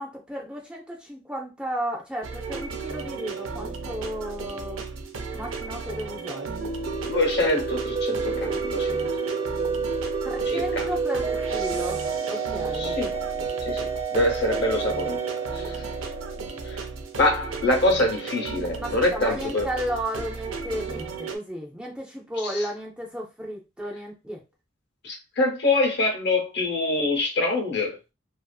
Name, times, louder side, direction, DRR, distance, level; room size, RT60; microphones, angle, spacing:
voice 1, 0.0-4.9 5.3-6.7 10.2-12.0 12.3-13.0 18.8-24.4, equal, 5° right, -1 dB, 0.5 m, -33 dB
sound 1, 2.2-21.4, right 4 dB, 85° right, 0.5 m, -35 dB
sound 2, 6.6-16.9, right 5 dB, 35° right, 0.7 m, -29 dB
voice 2, 7.1-9.1 10.5-10.9 12.7-13.1 13.6-15.2 15.5-15.8 16.7-16.8 17.2-19.7 22.4-22.6 25.0-28.0, left 2 dB, 55° left, 1 dB, 0.8 m, -25 dB
2.5 x 2.4 x 2.3 m, 0.26 s
head